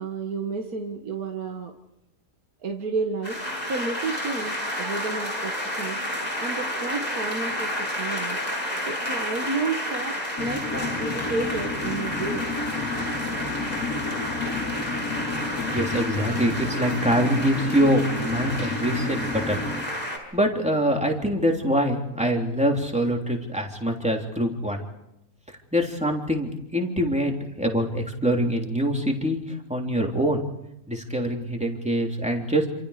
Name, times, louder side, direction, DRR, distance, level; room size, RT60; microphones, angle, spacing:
voice 1, 0.0-1.7 2.6-6.0 6.4-8.4 8.9-12.4, right 4 dB, 75° right, 2 dB, 2.1 m, -31 dB
sound 1, 3.2-20.2, equal, 25° left, 6.6 m, -31 dB
sound 2, 10.4-19.8, left 3 dB, 80° left, 2.9 m, -32 dB
voice 2, 15.7-19.6 20.3-24.8 25.7-30.4 30.9-32.7, equal, 5° right, 1 dB, 3.3 m, -24 dB
28.0 x 28.0 x 5.0 m, 0.85 s
omnidirectional pair, 1.6 m